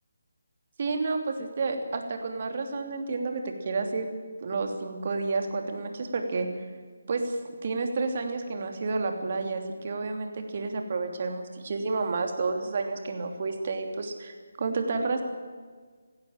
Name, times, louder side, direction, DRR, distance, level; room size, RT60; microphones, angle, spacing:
voice 1, 0.8-4.1 4.4-6.5 7.1-7.4 7.6-15.2, right 3 dB, 45° right, 5 dB, 3.0 m, -30 dB
18.5 x 16.0 x 8.9 m, 1.5 s
figure-of-eight pair, 155°, 0 cm